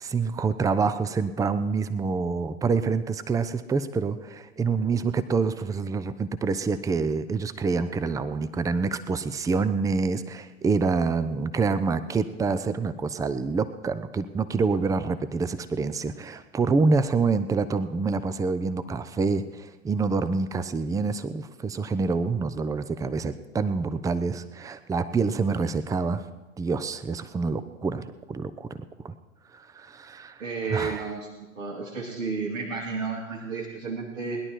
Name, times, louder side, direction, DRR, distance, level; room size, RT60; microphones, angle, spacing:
voice 1, 0.0-26.3 26.6-28.7 29.0-29.1 29.5-30.4 30.7-31.1, right 4 dB, 10° right, 13 dB, 0.6 m, -27 dB
voice 2, 30.4-31.3 31.6-34.4, right 4 dB, 75° right, -2 dB, 2.5 m, -32 dB
20.0 x 11.0 x 4.6 m, 1.1 s
figure-of-eight pair, 90°, 40 cm